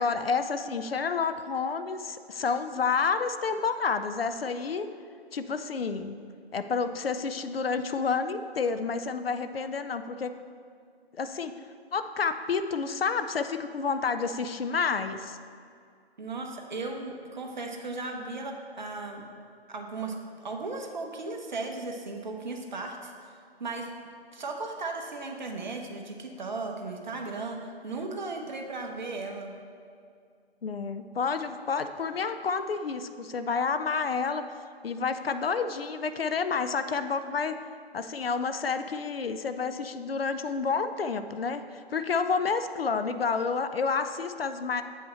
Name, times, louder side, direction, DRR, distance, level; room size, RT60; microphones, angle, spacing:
voice 1, 0.0-4.9 5.3-6.2 6.5-10.3 11.1-11.6 11.9-15.4 30.6-34.4 34.8-37.5 37.9-44.8, left 5 dB, 65° left, 10 dB, 0.6 m, -29 dB
voice 2, 16.2-19.2 19.7-23.3 23.6-23.9 24.3-29.5, right 3 dB, 45° right, 2 dB, 1.0 m, -36 dB
8.4 x 5.6 x 4.3 m, 2.2 s
figure-of-eight pair, 155°, 32 cm